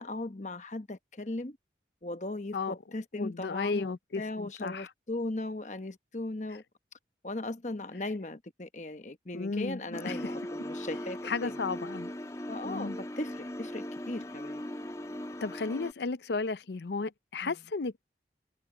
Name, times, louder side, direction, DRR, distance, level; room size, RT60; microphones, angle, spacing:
voice 1, 0.0-1.6 2.0-6.6 7.2-11.6 12.5-14.6 17.4-17.5, left 2 dB, 40° left, 1.1 m, -38 dB
voice 2, 3.2-4.9 9.3-10.3 11.2-12.1 12.6-13.0 15.4-18.0, left 4 dB, 75° left, 0.6 m, -34 dB
sound 1, 9.9-15.9, left 1 dB, 20° left, 2.2 m, -39 dB
head